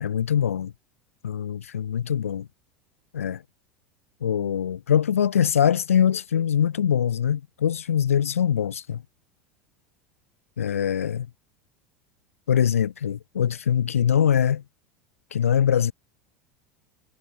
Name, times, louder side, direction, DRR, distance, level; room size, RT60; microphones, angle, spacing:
voice 1, 0.0-0.7 1.2-2.5 3.1-3.4 4.2-9.0 10.6-11.3 12.5-14.6 15.3-15.9, left 8 dB, 75° left, 1.0 m, -23 dB
figure-of-eight pair, 75°, 8 cm